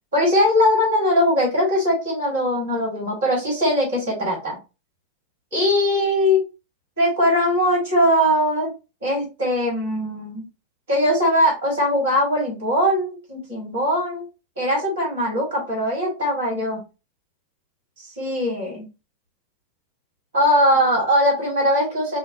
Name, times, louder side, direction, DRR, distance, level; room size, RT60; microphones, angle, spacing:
voice 1, 0.1-4.6 5.5-6.4 7.0-8.7 9.0-10.5 10.9-14.2 14.6-16.8 18.0-18.9 20.3-22.2, equal, 70° right, -2 dB, 1.9 m, -20 dB
4.9 x 2.0 x 2.7 m, 0.29 s
figure-of-eight pair, 90°, 0 cm